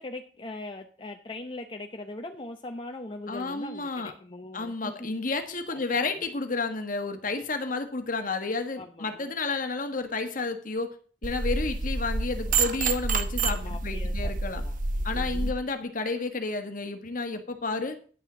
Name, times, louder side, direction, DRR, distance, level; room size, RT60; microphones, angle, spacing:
voice 1, 0.0-5.1 5.7-5.8 6.1-6.2 8.8-9.3 13.5-15.5, left 2 dB, 30° left, 4 dB, 0.8 m, -41 dB
voice 2, 3.3-4.1 4.5-10.9 11.2-14.6 15.0-18.0, left 3 dB, 50° left, 8 dB, 1.4 m, -31 dB
sound 1, 11.2-15.5, right 3 dB, 50° right, 1.0 m, -28 dB
10.0 x 6.5 x 6.1 m, 0.42 s
head